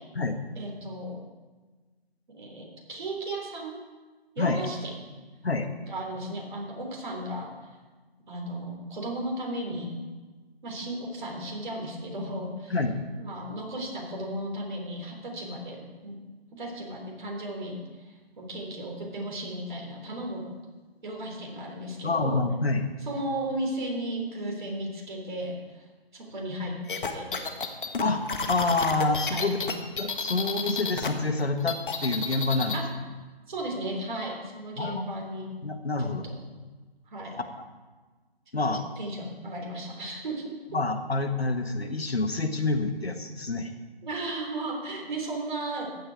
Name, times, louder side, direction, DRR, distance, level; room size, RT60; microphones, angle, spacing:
voice 1, 0.6-1.2 2.3-3.8 4.4-5.0 5.8-7.5 8.3-9.9 10.6-12.7 13.2-16.2 16.5-17.8 18.0-20.5 21.0-22.4 23.1-25.8 26.1-26.8 27.1-27.5 29.3-29.5 32.7-32.8 33.5-35.5 36.0-36.1 37.1-37.4 38.7-40.5 44.0-45.9, right 1 dB, 50° right, 0 dB, 3.5 m, -35 dB
voice 2, 22.0-22.9 28.0-29.6 30.0-32.8 34.8-35.1 35.6-36.3 37.4-37.6 38.5-38.8 40.7-43.7, left 3 dB, 85° left, 7 dB, 1.6 m, -27 dB
sound 1, 26.9-31.1 31.4-32.8, left 5 dB, 55° left, 1.4 m, -31 dB
14.5 x 10.0 x 4.7 m, 1.3 s
figure-of-eight pair, 150°, 30 cm